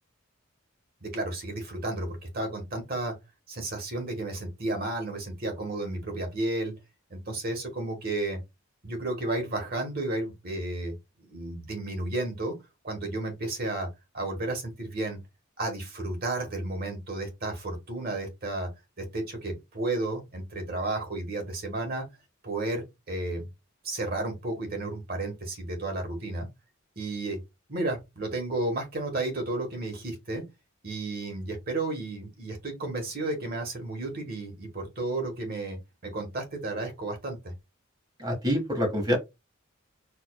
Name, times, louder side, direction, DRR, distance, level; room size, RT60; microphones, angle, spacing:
voice 1, 1.0-3.1 3.5-6.7 7.1-8.4 8.8-10.9 11.2-12.5 12.8-13.9 14.1-15.2 15.6-18.7 19.0-22.0 22.4-23.5 23.8-26.5 27.0-27.4 27.7-30.4 30.8-37.4, right 2 dB, 45° right, 1.3 m, -32 dB
voice 2, 38.2-39.2, equal, 20° right, 1.0 m, -26 dB
4.6 x 2.6 x 2.3 m
head